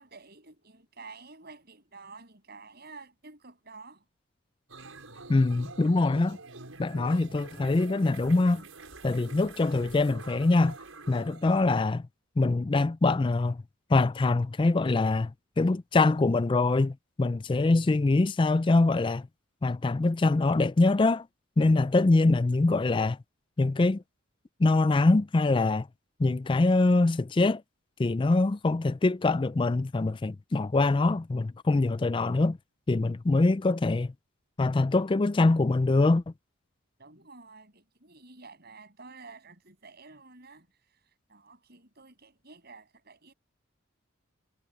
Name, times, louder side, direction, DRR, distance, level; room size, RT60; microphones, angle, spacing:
voice 1, 0.0-4.0 37.0-40.7 41.3-43.3, right 4 dB, 50° right, 7.7 m, -50 dB
sound 1, 4.7-11.6, right 3 dB, 80° right, 6.5 m, -46 dB
voice 2, 5.3-6.4 6.8-8.6 9.0-10.8 11.1-12.0 12.4-13.6 13.9-15.3 15.6-19.3 19.6-21.3 21.6-23.2 23.6-24.0 24.6-25.9 26.2-27.6 28.0-32.6 32.9-34.1 34.6-36.2, left 3 dB, 25° left, 0.4 m, -24 dB
head